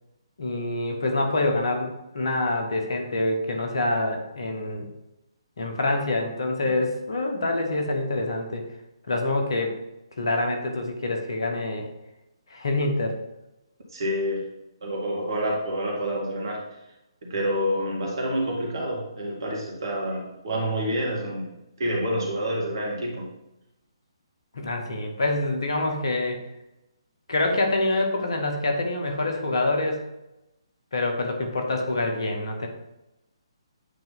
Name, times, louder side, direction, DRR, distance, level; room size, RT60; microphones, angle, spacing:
voice 1, 0.4-4.9 5.6-8.7 9.1-9.7 10.2-11.9 12.5-13.2 24.5-26.4 27.3-30.0 30.9-32.7, left 2 dB, 65° left, 3 dB, 1.2 m, -26 dB
voice 2, 13.9-14.5 14.8-16.6 17.2-21.5 21.8-23.3, equal, 55° right, -2 dB, 1.9 m, -28 dB
8.4 x 2.9 x 4.0 m, 0.92 s
figure-of-eight pair, 135°, 3 cm